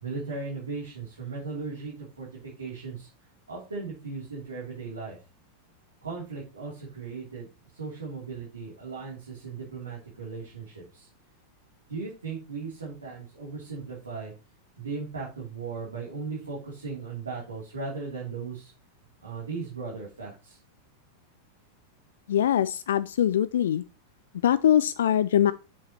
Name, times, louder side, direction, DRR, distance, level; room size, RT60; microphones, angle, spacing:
voice 1, 0.0-3.1 3.5-5.2 6.0-7.5 7.7-11.1 11.9-14.3 14.8-18.7 19.2-20.6, right 4 dB, 75° right, 2.8 m, -37 dB
voice 2, 22.3-23.8 24.4-25.5, left 10 dB, 60° left, 0.3 m, -22 dB
7.2 x 6.4 x 2.9 m
figure-of-eight pair, 90°, 0 cm